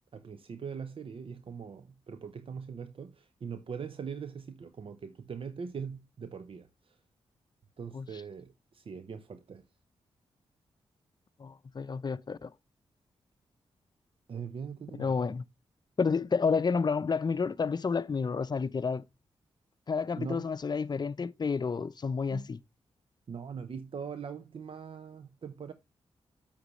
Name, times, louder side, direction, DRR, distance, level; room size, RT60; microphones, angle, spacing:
voice 1, 0.1-7.0 7.8-9.6 14.3-15.2 20.2-20.5 22.3-22.5 23.3-25.7, right 6 dB, 55° right, 0.7 m, -41 dB
voice 2, 11.4-12.5 15.0-15.4 16.0-19.0 19.9-22.6, left 5 dB, 40° left, 0.6 m, -30 dB
8.4 x 8.0 x 3.1 m
cardioid pair, 65°, 11 cm